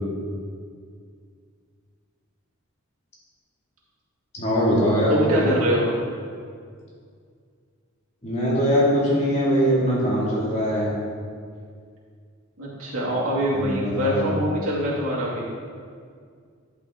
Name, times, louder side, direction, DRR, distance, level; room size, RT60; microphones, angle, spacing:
voice 1, 4.3-5.4 8.2-10.9 13.5-14.3, equal, 30° left, -6 dB, 2.1 m, -22 dB
voice 2, 5.1-5.9 12.6-15.4, equal, 80° right, -6 dB, 2.4 m, -24 dB
11.0 x 5.7 x 3.7 m, 2.1 s
head